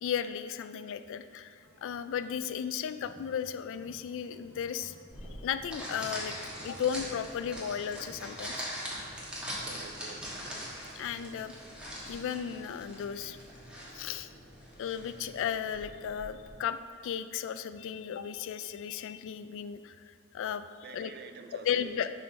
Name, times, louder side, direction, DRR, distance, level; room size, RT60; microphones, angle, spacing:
voice 1, 0.0-4.9 5.4-6.4 6.6-8.7 11.0-11.5 12.0-13.4 13.9-14.3 14.8-16.8 17.0-20.6 20.9-21.1 21.6-22.2, left 8 dB, 60° left, 11 dB, 0.3 m, -35 dB
sound 1, 1.2-12.6, equal, 85° right, 1.6 m, -59 dB
sound 2, 5.1-16.5, equal, 5° right, 1.4 m, -42 dB
voice 2, 9.6-10.4 20.8-22.1, right 4 dB, 50° right, 7 dB, 0.5 m, -47 dB
7.5 x 3.8 x 5.7 m, 2.1 s
head